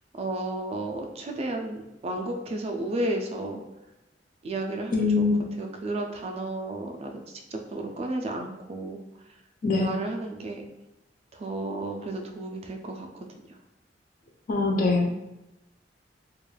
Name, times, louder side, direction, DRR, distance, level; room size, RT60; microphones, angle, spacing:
voice 1, 0.1-3.6 4.4-5.2 5.6-9.0 9.3-9.4 9.7-10.7 11.3-13.6, right 2 dB, 35° right, 3 dB, 0.3 m, -33 dB
voice 2, 4.9-5.4 9.6-9.9 14.5-15.1, left 3 dB, 50° left, 1 dB, 0.4 m, -23 dB
3.2 x 2.3 x 2.2 m, 0.94 s
head